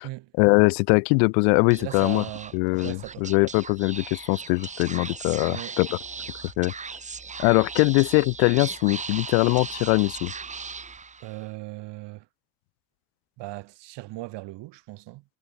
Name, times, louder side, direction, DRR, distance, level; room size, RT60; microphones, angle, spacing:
voice 1, 0.4-2.2 2.5-6.0 6.6-6.7 7.4-10.3, left 40 dB or more, 90° left, 1.7 m, -22 dB
Speech / Whispering, 1.6-11.5, right 5 dB, 15° right, 1.6 m, -38 dB
voice 2, 1.8-3.3 5.5-5.8 11.2-12.3 13.4-15.2, right 19 dB, 60° right, 3.7 m, -38 dB
cardioid pair, 150°, 48 cm